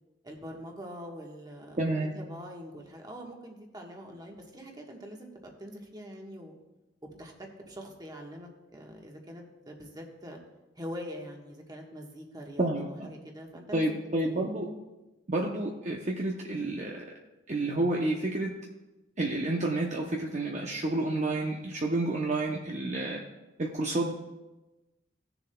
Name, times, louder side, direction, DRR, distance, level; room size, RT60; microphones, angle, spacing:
voice 1, 0.2-6.5 7.0-10.4 10.8-14.5, equal, 20° right, 1 dB, 1.3 m, -44 dB
voice 2, 1.8-2.1 12.6-13.1 13.7-14.7 15.3-17.1 17.5-18.5 19.2-23.2 23.6-24.1, right 2 dB, 40° right, -1 dB, 0.7 m, -30 dB
18.0 x 7.0 x 2.3 m, 1.1 s
head